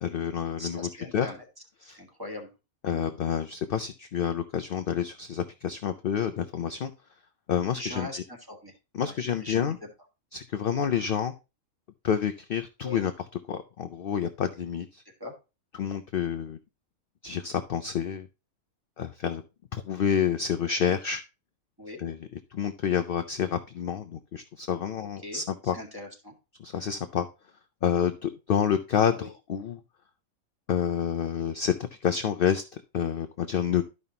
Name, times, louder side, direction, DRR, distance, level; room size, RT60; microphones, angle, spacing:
voice 1, 0.0-1.3 1.9-2.0 2.8-6.9 7.5-8.1 8.9-9.8 10.3-11.3 12.0-13.1 13.5-15.0 15.8-16.6 17.2-18.3 19.0-19.4 19.7-21.2 22.0-22.2 22.5-25.8 26.6-27.3 27.8-29.8 30.7-31.7 32.0-32.6 32.9-33.8, left 8 dB, 60° left, 9 dB, 0.6 m, -28 dB
voice 2, 0.6-1.5 1.8-2.5 7.8-8.7 9.0-9.8 12.8-13.0 15.2-15.3 20.9-21.0 21.8-22.0 25.2-26.3 29.1-29.3, left 1 dB, 15° right, 0 dB, 1.7 m, -40 dB
12.5 x 5.4 x 2.8 m, 0.28 s
omnidirectional pair, 1.5 m